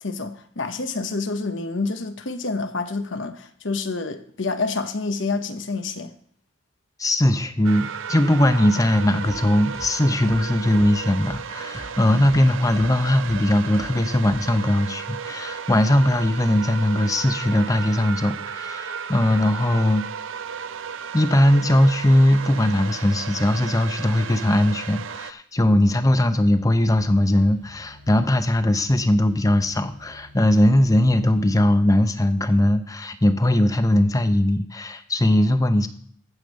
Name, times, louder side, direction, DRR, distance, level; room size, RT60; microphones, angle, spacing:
voice 1, 0.0-6.1 12.1-12.3, left 3 dB, 70° left, 1.0 m, -28 dB
voice 2, 7.0-20.0 21.1-35.9, left 1 dB, 15° left, 0.7 m, -20 dB
sound 1, 7.6-25.3, right 7 dB, 75° right, 0.6 m, -34 dB
sound 2, 9.2-9.4 9.7-9.9 10.2-10.4 10.7-10.9 11.2-11.4 11.7-11.9 12.2-12.4 12.7-12.9 13.2-13.4 13.7-13.9 14.2-14.4, right 1 dB, 15° right, 0.4 m, -39 dB
sound 3, 26.6-31.6, left 1 dB, 60° right, 1.7 m, -49 dB
14.5 x 5.3 x 6.4 m
head